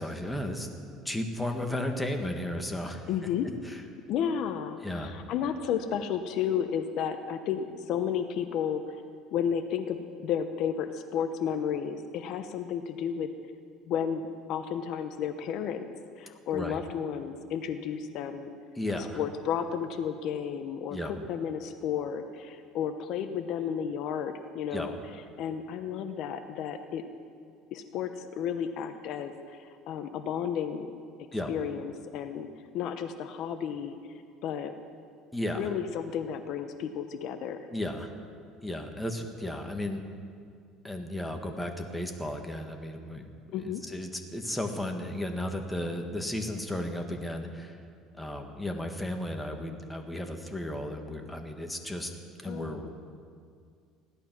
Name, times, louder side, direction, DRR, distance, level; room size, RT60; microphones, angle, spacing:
voice 1, 0.0-3.1 3.6-3.8 4.8-5.1 16.5-16.8 18.7-19.2 20.9-21.1 24.7-24.9 31.3-31.5 35.3-35.7 37.7-38.1 38.6-40.0 40.8-47.8 48.1-52.1 52.4-52.9, left 1 dB, 5° left, 4 dB, 1.5 m, -34 dB
voice 2, 3.1-3.5 4.1-8.8 9.3-13.3 13.9-15.8 16.2-18.5 18.9-25.0 25.4-27.0 27.7-30.9 31.5-32.5 32.7-34.0 34.4-34.7 35.6-37.6 43.5-43.8 52.5-52.9, left 8 dB, 60° left, 9 dB, 0.8 m, -32 dB
16.0 x 12.0 x 6.0 m, 2.2 s
cardioid pair, 120°, 0 cm